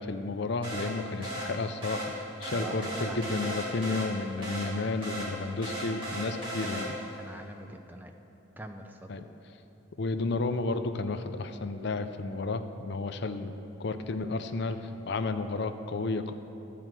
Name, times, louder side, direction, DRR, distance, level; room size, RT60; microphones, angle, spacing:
voice 1, 0.0-2.1 2.4-6.9 9.1-9.3 10.0-13.5 13.8-16.3, left 3 dB, 55° left, 9 dB, 0.5 m, -32 dB
sound 1, 0.6-7.2, equal, 25° right, 2.6 m, -37 dB
voice 2, 2.5-3.2 7.2-8.1 8.6-9.1, right 1 dB, 10° right, 5 dB, 0.5 m, -43 dB
12.0 x 4.6 x 7.4 m, 3.0 s
head